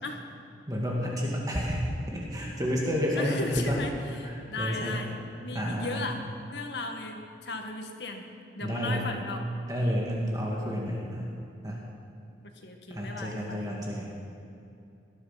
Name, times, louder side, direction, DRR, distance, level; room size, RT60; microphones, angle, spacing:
voice 1, 0.7-3.8 4.2-5.0 5.5-6.1 8.6-9.1 9.7-11.3 11.6-11.8 12.9-14.1, equal, 20° right, -3 dB, 2.1 m, -30 dB
voice 2, 3.2-3.9 4.2-5.1 5.4-6.2 6.5-8.2 8.6-9.5 12.6-13.7, left 3 dB, 75° left, 3 dB, 1.8 m, -36 dB
19.0 x 12.5 x 5.9 m, 2.6 s
head